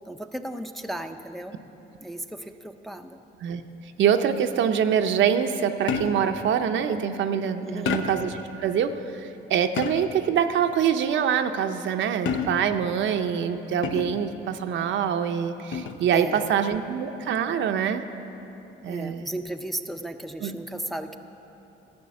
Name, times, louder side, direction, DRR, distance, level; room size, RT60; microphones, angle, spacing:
voice 1, 0.1-1.6 2.0-3.2 7.6-8.0 16.1-16.5 18.9-21.2, right 1 dB, ahead, 5 dB, 0.5 m, -35 dB
voice 2, 4.0-18.0 18.8-19.3 20.4-20.5, right 8 dB, 70° right, 7 dB, 0.6 m, -25 dB
sound 1, 5.9-6.4 7.9-8.4 9.8-10.3 12.3-12.8 13.8-14.3 15.7-16.1, left 6 dB, 70° left, 0.7 m, -30 dB
13.0 x 6.3 x 8.5 m, 3.0 s
cardioid pair, 90°, 20 cm